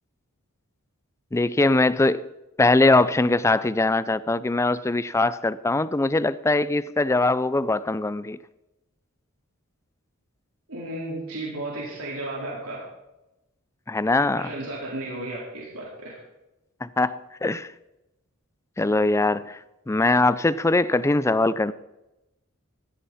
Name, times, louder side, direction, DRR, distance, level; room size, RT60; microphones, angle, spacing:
voice 1, 1.3-2.3 2.6-8.4 13.9-14.5 16.8-17.7 18.8-19.6 19.9-21.7, left 2 dB, 15° left, 0.4 m, -22 dB
voice 2, 10.7-12.9 14.4-16.2, right 1 dB, 90° right, 4.1 m, -34 dB
16.0 x 13.5 x 4.2 m
head